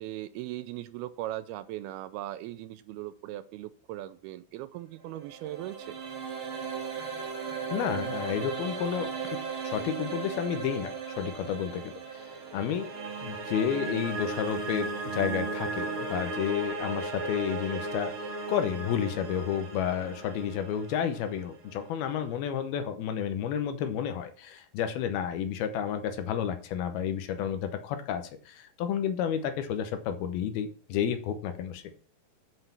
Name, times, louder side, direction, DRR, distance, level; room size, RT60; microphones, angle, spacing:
voice 1, 0.0-6.0, right 14 dB, 80° right, 13 dB, 2.3 m, -39 dB
sound 1, 5.1-22.2, right 4 dB, 50° right, 1.6 m, -36 dB
voice 2, 7.7-9.1 9.6-12.9 13.2-32.0, left 8 dB, 75° left, 9 dB, 2.7 m, -31 dB
8.0 x 5.7 x 7.2 m, 0.42 s
omnidirectional pair, 4.6 m